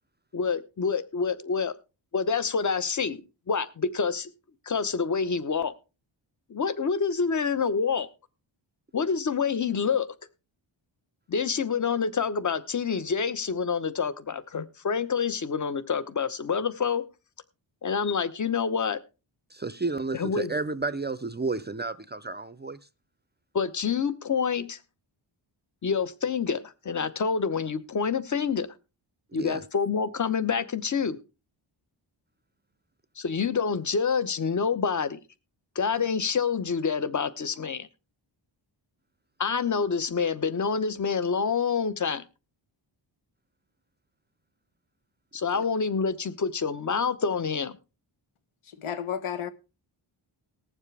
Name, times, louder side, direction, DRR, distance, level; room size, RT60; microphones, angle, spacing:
voice 1, 0.3-1.7 2.1-4.3 4.7-5.7 6.5-8.1 8.9-10.1 11.3-17.0 17.8-19.0 20.1-20.5 23.5-24.8 25.8-28.7 29.3-31.2 33.2-35.2 35.7-37.9 39.4-42.2 45.3-47.7, left 5 dB, 40° left, 0.9 m, -27 dB
voice 2, 19.5-22.8 29.3-29.6 45.5-45.6, right 3 dB, 20° right, 0.5 m, -32 dB
voice 3, 48.6-49.5, left 8 dB, 85° left, 1.2 m, -32 dB
19.5 x 7.3 x 3.3 m
wide cardioid pair, 120°, 49 cm